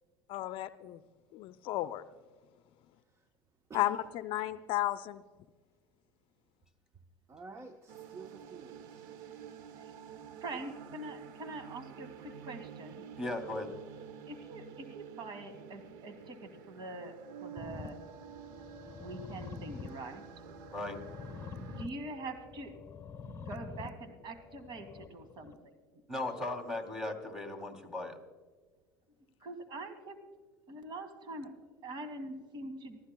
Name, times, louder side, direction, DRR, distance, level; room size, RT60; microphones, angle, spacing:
voice 1, 0.3-1.0 1.3-2.0 3.7-5.2, left 14 dB, 55° left, 12 dB, 0.5 m, -33 dB
voice 2, 7.3-9.1, right 3 dB, 25° right, 6 dB, 1.0 m, -50 dB
sound 1, 7.9-21.9, right 9 dB, 70° right, 0.9 m, -50 dB
voice 3, 10.4-13.0 14.3-17.1 17.4-18.0 19.0-20.2 21.6-22.7 23.5-25.7 29.4-30.2 30.7-31.5 31.8-33.0, right 2 dB, 50° right, 9 dB, 2.0 m, -44 dB
voice 4, 13.2-13.7 20.7-21.0 26.1-28.2, left 2 dB, 5° right, 1 dB, 2.8 m, -37 dB
sound 2, 17.6-25.5, left 5 dB, 25° left, 1.1 m, -47 dB
25.5 x 15.0 x 2.2 m, 1.4 s
supercardioid pair, 95°, 11 cm